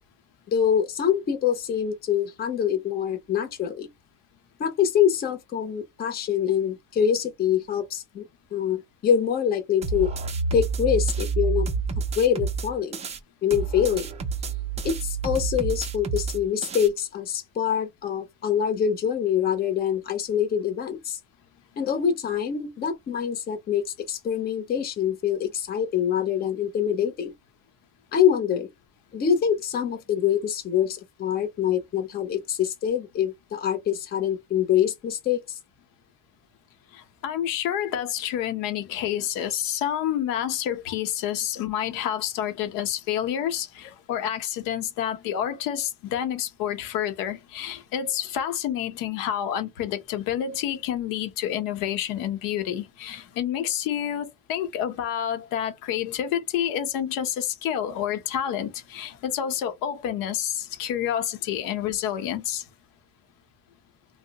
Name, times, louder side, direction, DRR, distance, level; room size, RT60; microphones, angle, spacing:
voice 1, 0.5-3.9 4.6-10.1 10.5-11.7 12.2-13.0 13.4-14.1 14.8-21.2 21.8-27.3 28.1-28.7 29.1-35.6, left 8 dB, 30° left, 0.6 m, -25 dB
sound 1, 9.8-13.2 13.5-16.9, right 5 dB, 20° right, 0.4 m, -29 dB
voice 2, 36.9-62.6, left 10 dB, 75° left, 0.8 m, -29 dB
2.7 x 2.0 x 3.8 m
cardioid pair, 150°, 34 cm